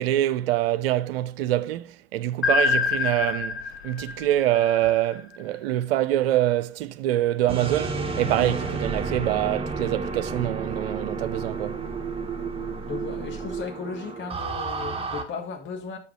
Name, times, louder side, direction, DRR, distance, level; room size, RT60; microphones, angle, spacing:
voice 1, 0.0-11.9, right 13 dB, 60° right, 0.7 m, -25 dB
sound 1, 2.4-5.4, left 5 dB, 85° left, 0.6 m, -26 dB
sound 2, 7.5-15.2, right 4 dB, 20° right, 1.4 m, -31 dB
voice 2, 12.9-16.0, left 5 dB, 35° left, 1.5 m, -35 dB
7.0 x 5.0 x 5.0 m
figure-of-eight pair, 70°, 32 cm